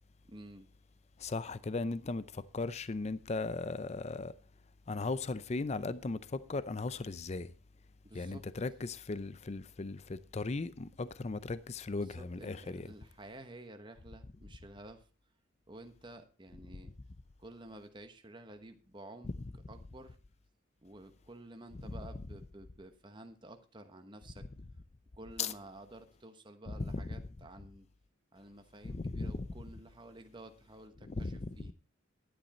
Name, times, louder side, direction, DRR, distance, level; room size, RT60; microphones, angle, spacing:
voice 1, 0.2-0.7 8.0-8.4 12.0-15.0 15.7-16.9 17.4-20.2 20.8-24.5 25.2-27.9 28.3-31.7, right 1 dB, 25° right, 1.1 m, -52 dB
voice 2, 1.2-2.2 2.5-4.3 4.9-6.2 6.5-7.5 8.2-10.0 10.3-12.9 25.4-25.5 26.8-27.0 28.9-29.3 31.1-31.4, left 3 dB, 35° left, 0.5 m, -37 dB
11.5 x 10.5 x 4.2 m
head